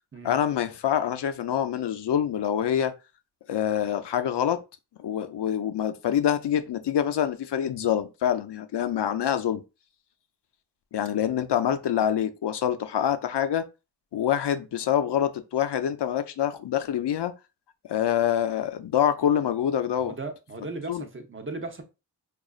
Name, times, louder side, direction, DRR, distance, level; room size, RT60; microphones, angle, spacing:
voice 1, 0.2-2.9 3.5-4.6 5.0-9.6 10.9-13.7 14.1-17.3 17.9-20.1 20.9-21.1, left 9 dB, 90° left, 0.5 m, -26 dB
voice 2, 20.0-21.8, right 3 dB, 30° right, 0.7 m, -37 dB
4.8 x 2.4 x 2.4 m
wide cardioid pair, 90°, 40 cm